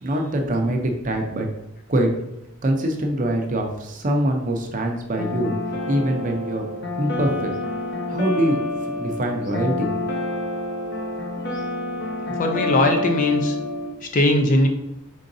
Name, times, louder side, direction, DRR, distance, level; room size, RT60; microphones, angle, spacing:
voice 1, 0.0-1.5 1.9-2.1 2.6-5.5 5.9-6.6 6.9-7.5 8.1-8.6 9.0-9.9, right 1 dB, 40° right, 3 dB, 0.6 m, -23 dB
sound 1, 5.2-13.9, left 2 dB, 55° left, 0.9 m, -28 dB
voice 2, 12.4-13.6 14.0-14.7, left 1 dB, 40° left, 4 dB, 0.5 m, -19 dB
4.9 x 3.8 x 2.6 m, 0.85 s
head